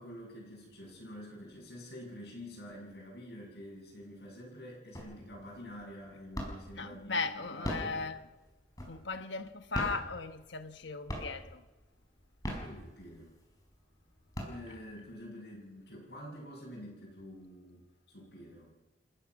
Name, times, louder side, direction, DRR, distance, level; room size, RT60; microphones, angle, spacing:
voice 1, 0.0-8.2 12.6-13.4 14.4-18.7, equal, 60° left, 7.1 m, -48 dB
sound 1, 4.9-5.4 5.8-6.8 7.4-9.2 9.6-10.8 11.1-11.6 12.2-13.3 13.8-13.9 14.2-15.1, equal, 20° left, 4.9 m, -39 dB
voice 2, 6.8-8.2 8.9-11.6, left 4 dB, 80° left, 1.3 m, -37 dB
29.5 x 15.0 x 6.2 m
head